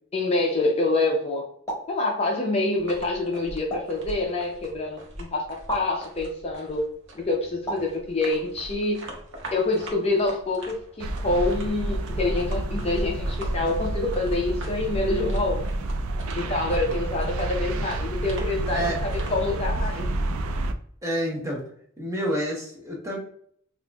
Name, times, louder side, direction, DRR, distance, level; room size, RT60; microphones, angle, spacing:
voice 1, 0.1-1.5 1.9-6.9 7.1-9.1 9.5-15.6 16.3-20.1, left 2 dB, 30° left, 0 dB, 0.5 m, -26 dB
sound 1, 1.7-2.0 3.7-4.0 5.7-5.9 7.7-8.0, right 1 dB, 15° left, 1.4 m, -32 dB
sound 2, 2.7-19.3, right 1 dB, 60° right, 0.8 m, -43 dB
sound 3, 11.0-20.7, right 1 dB, 85° right, 0.4 m, -29 dB
voice 2, 21.0-21.6 22.0-23.2, right 1 dB, 15° right, -2 dB, 0.8 m, -28 dB
4.2 x 2.5 x 2.3 m, 0.63 s
head